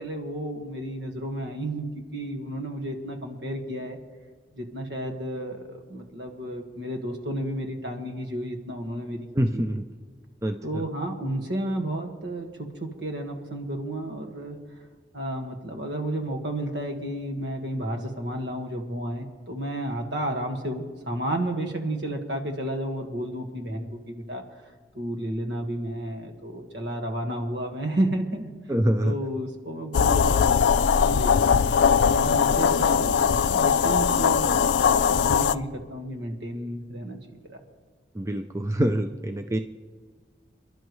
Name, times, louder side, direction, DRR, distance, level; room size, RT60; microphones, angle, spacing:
voice 1, 0.0-4.0 4.5-9.3 9.5-9.6 10.6-14.6 15.1-24.4 24.9-28.5 29.0-30.5 30.8-31.5 32.1-37.6, right 1 dB, 70° right, 4 dB, 1.7 m, -32 dB
voice 2, 9.3-9.8 10.4-10.8 28.7-29.1 38.1-39.6, right 1 dB, 15° right, 6 dB, 0.4 m, -25 dB
sound 1, 29.9-35.5, left 7 dB, 75° left, 0.4 m, -20 dB
28.5 x 11.5 x 3.2 m, 1.4 s
head